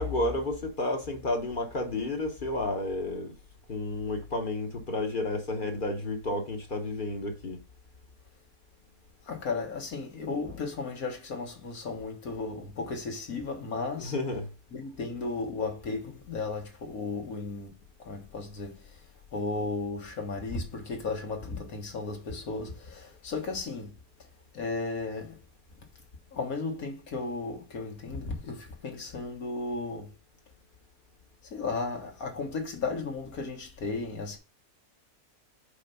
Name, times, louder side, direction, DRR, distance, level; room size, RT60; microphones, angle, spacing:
voice 1, 0.0-3.3 3.7-7.6 14.0-14.5, left 2 dB, 40° left, 1.0 m, -31 dB
voice 2, 9.2-14.1 14.7-19.0 19.3-23.9 24.5-25.4 26.3-30.1 31.5-34.4, left 3 dB, 80° left, 1.9 m, -35 dB
5.0 x 4.4 x 5.3 m
omnidirectional pair, 1.5 m